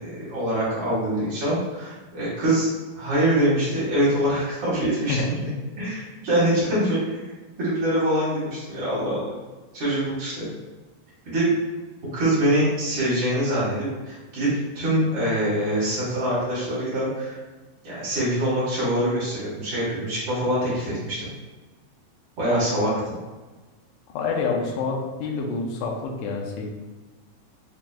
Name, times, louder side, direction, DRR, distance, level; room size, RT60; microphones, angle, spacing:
voice 1, 0.0-2.7 2.9-5.5 5.8-7.2 7.6-9.2 9.7-10.4 11.2-11.5 12.1-14.5 14.7-17.4 17.8-21.3 22.4-23.2, right 1 dB, 85° right, -9 dB, 1.0 m, -24 dB
voice 2, 24.1-26.7, left 4 dB, 80° left, 0 dB, 1.9 m, -27 dB
6.0 x 2.6 x 2.2 m, 1.3 s
omnidirectional pair, 4.2 m